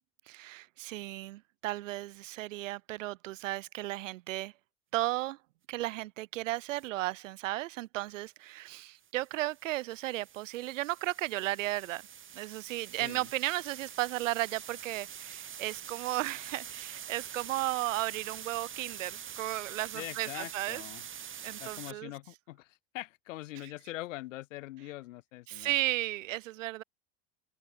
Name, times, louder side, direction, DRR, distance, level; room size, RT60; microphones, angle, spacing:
voice 1, 0.3-4.5 4.9-5.4 5.7-12.0 12.3-20.8 21.4-22.1 25.5-26.8, right 17 dB, 75° right, 4.2 m, -34 dB
sound 1, 6.6-6.9 9.0-21.9, right 9 dB, 30° right, 2.3 m, -45 dB
voice 2, 19.9-21.0 21.6-25.7, left 17 dB, 75° left, 5.5 m, -43 dB
open air
hypercardioid pair, 85°, 38 cm